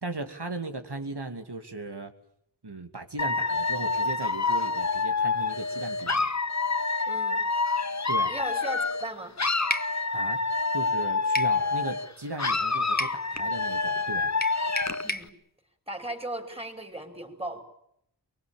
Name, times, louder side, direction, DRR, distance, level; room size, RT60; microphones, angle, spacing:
voice 1, 0.0-2.1 2.6-6.3 8.1-8.3 10.1-10.4 10.7-14.3, right 2 dB, 70° right, 6 dB, 2.7 m, -37 dB
Dog / Alarm, 3.2-9.1 9.4-12.1 12.4-15.1, left 3 dB, 40° left, 1.2 m, -27 dB
voice 2, 7.0-7.5 8.3-9.4 15.0-15.4 15.9-17.6, right 1 dB, 15° right, 6 dB, 5.6 m, -36 dB
sound 1, 9.7-9.9 11.4-11.6 13.0-13.2 14.4-15.3, left 1 dB, 20° left, 1.6 m, -31 dB
24.0 x 22.5 x 8.9 m, 0.74 s
wide cardioid pair, 45°, 41 cm